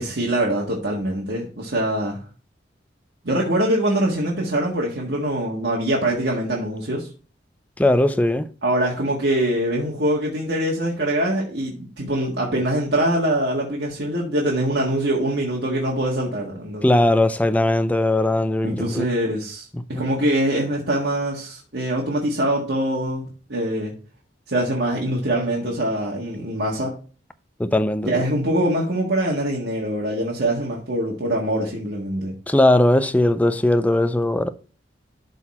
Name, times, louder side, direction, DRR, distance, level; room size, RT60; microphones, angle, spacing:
voice 1, 0.0-2.2 3.2-7.1 8.6-16.8 18.6-23.9 24.5-26.9 28.0-32.3, right 1 dB, 65° right, 1.7 m, -23 dB
voice 2, 7.8-8.5 16.8-19.0 19.7-20.1 27.6-28.1 32.5-34.5, left 1 dB, 10° left, 0.5 m, -19 dB
12.0 x 4.1 x 4.2 m
head